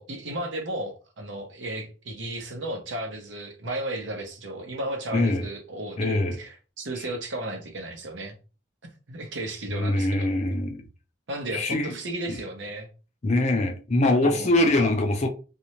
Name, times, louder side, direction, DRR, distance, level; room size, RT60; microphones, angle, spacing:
voice 1, 0.0-8.3 9.1-10.3 11.3-12.9 14.2-14.9, right 1 dB, 75° right, 0.7 m, -34 dB
voice 2, 6.0-6.4 9.7-10.8 11.5-11.9 12.3-12.4 13.2-15.3, left 2 dB, 35° left, 0.5 m, -23 dB
2.5 x 2.1 x 2.9 m
head